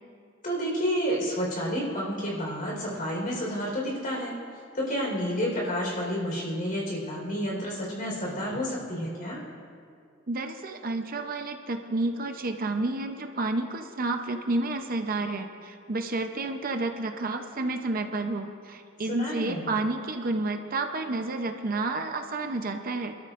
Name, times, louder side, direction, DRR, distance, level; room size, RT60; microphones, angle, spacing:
voice 1, 0.4-4.3 4.7-9.4 19.1-19.7, equal, 45° left, -3 dB, 4.4 m, -30 dB
voice 2, 10.3-23.2, right 2 dB, 45° right, 5 dB, 0.8 m, -30 dB
25.0 x 13.5 x 2.6 m, 2.2 s
head